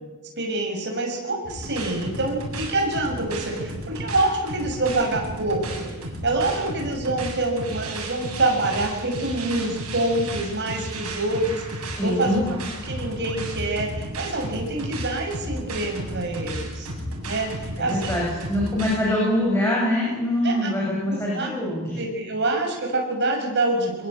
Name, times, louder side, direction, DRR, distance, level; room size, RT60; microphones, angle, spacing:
voice 1, 0.4-5.9 6.2-12.4 12.9-16.9 17.3-18.0 20.4-20.7 21.3-21.5 22.0-24.1, right 2 dB, 50° right, 1 dB, 6.7 m, -26 dB
sound 1, 1.4-18.9, right 1 dB, 80° right, 7.8 m, -33 dB
voice 2, 11.9-12.4 17.8-22.0, left 1 dB, 10° left, -4 dB, 7.7 m, -24 dB
24.5 x 22.5 x 8.8 m, 1.2 s
head